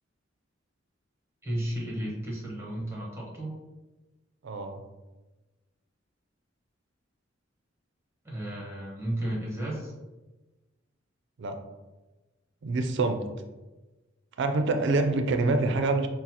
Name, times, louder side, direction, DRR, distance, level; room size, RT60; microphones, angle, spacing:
voice 1, 1.4-3.6 8.2-9.9, right 1 dB, 15° right, -3 dB, 1.0 m, -33 dB
voice 2, 4.4-4.8 11.4-11.6 12.6-13.2 14.4-16.1, right 3 dB, 65° right, 6 dB, 0.4 m, -26 dB
6.1 x 2.0 x 2.8 m, 1.1 s
head